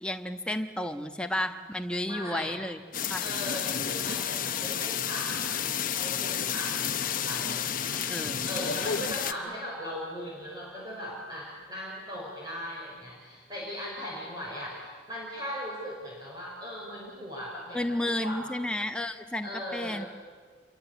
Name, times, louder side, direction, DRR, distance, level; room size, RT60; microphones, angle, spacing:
voice 1, 0.0-2.8 3.1-3.2 8.1-8.8 17.7-20.0, left 1 dB, 5° left, 6 dB, 1.2 m, -32 dB
voice 2, 2.0-2.6 3.2-18.5 19.4-20.1, equal, 20° right, -4 dB, 5.4 m, -39 dB
sound 1, 2.9-9.3, left 8 dB, 45° left, 1.0 m, -31 dB
27.0 x 23.0 x 8.2 m, 1.5 s
head